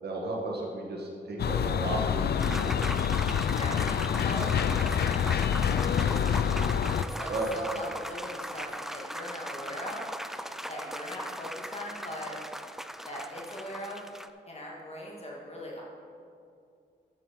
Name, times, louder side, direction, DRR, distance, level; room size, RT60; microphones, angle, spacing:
voice 1, 0.0-2.7 7.3-7.8, right 2 dB, 60° right, -2 dB, 1.7 m, -34 dB
sound 1, 1.4-7.0, left 8 dB, 60° left, 0.4 m, -27 dB
voice 2, 1.9-2.3 3.5-6.4 7.0-10.1 10.7-12.4 13.1-14.0 14.5-15.8, equal, 35° left, -3 dB, 2.1 m, -40 dB
sound 2, 2.4-14.3, equal, ahead, 0.5 m, -39 dB
7.6 x 7.4 x 6.5 m, 2.4 s
cardioid pair, 55°, 19 cm